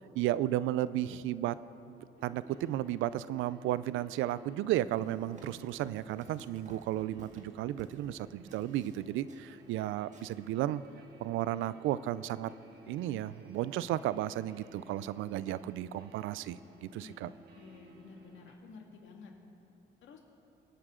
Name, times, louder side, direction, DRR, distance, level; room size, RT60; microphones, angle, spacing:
voice 1, 0.1-1.6 1.9-10.8 11.2-12.5 12.9-17.3, right 13 dB, 90° right, 17 dB, 0.4 m, -34 dB
sound 1, 2.2-18.5, right 2 dB, 55° right, 1.8 m, -56 dB
Run, 4.8-8.1 8.5-9.9 10.1-10.3, right 2 dB, 35° right, 1.8 m, -54 dB
voice 2, 17.0-19.3 20.0-20.2, left 5 dB, 75° left, 2 dB, 2.0 m, -52 dB
25.5 x 9.0 x 3.8 m, 2.8 s
cardioid pair, 90°, 20 cm